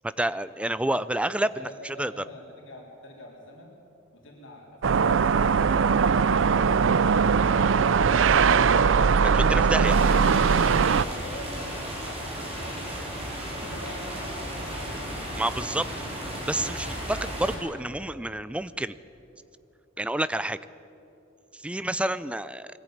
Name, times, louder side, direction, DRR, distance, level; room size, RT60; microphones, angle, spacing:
voice 1, 0.0-2.1 9.2-10.0 15.3-15.9 16.5-19.0 20.0-20.6 21.5-22.7, right 1 dB, 5° right, 15 dB, 0.4 m, -29 dB
voice 2, 1.6-3.8 4.1-8.5 11.0-15.1, left 1 dB, 65° left, -1 dB, 3.8 m, -45 dB
sound 1, 4.8-11.1, right 6 dB, 65° right, 0.5 m, -20 dB
sound 2, 9.8-17.6, equal, 30° right, 5.1 m, -35 dB
21.5 x 14.5 x 9.3 m, 2.9 s
head